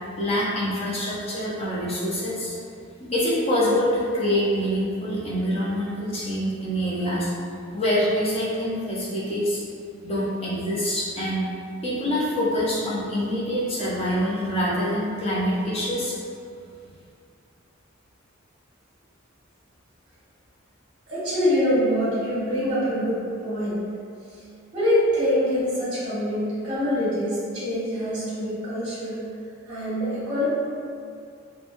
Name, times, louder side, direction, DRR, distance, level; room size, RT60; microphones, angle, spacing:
voice 1, 0.2-2.6 3.0-7.3 7.7-9.6 10.0-11.4 11.8-16.2, equal, 30° left, -7 dB, 0.6 m, -25 dB
voice 2, 21.1-23.8 24.7-29.2 29.7-30.5, equal, 25° right, -11 dB, 1.1 m, -24 dB
3.2 x 2.2 x 2.5 m, 2.4 s
head